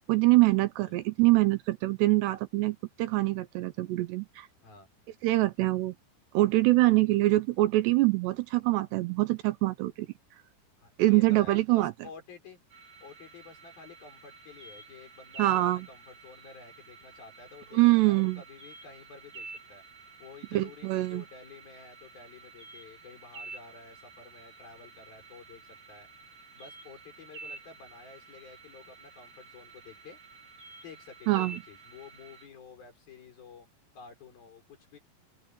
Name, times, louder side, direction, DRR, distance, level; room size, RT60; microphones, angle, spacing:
voice 1, 0.1-4.5 5.2-5.9 6.3-10.1 11.0-11.9 15.4-15.9 17.7-18.4 20.5-21.2 31.3-31.6, right 19 dB, 80° right, 2.8 m, -24 dB
voice 2, 10.8-12.6 13.0-19.8 20.2-26.1 26.5-30.2 30.8-33.7 33.9-35.0, left 5 dB, 55° left, 7.3 m, -51 dB
sound 1, 12.7-32.5, right 4 dB, 50° right, 8.7 m, -50 dB
open air
omnidirectional pair, 5.2 m